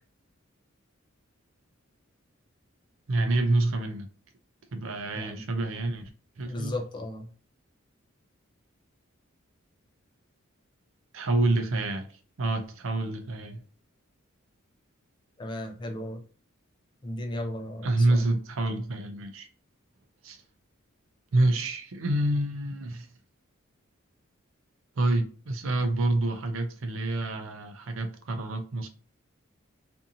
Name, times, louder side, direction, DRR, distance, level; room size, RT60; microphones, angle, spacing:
voice 1, 3.1-4.1 4.7-6.1 6.4-6.8 11.1-12.1 12.4-13.6 17.8-19.5 20.2-20.4 21.3-23.1 25.0-28.9, right 2 dB, 70° right, 0.5 m, -27 dB
voice 2, 6.4-7.3 15.4-16.2 17.0-18.2, left 1 dB, 20° left, 0.4 m, -35 dB
2.6 x 2.5 x 2.6 m
head